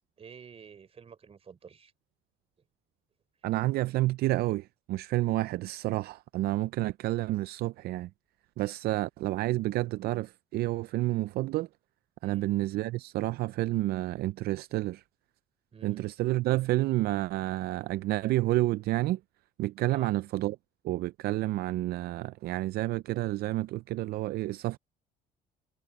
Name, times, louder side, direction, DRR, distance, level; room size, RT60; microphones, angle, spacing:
voice 1, 0.2-1.9 12.2-12.5 15.7-16.0 19.9-20.1, right 6 dB, 35° right, 3.6 m, -49 dB
voice 2, 3.4-8.1 8.6-11.7 12.2-15.0 15.8-19.2 19.6-20.6 20.8-24.8, right 17 dB, 65° right, 0.4 m, -29 dB
cardioid pair, 110°, 17 cm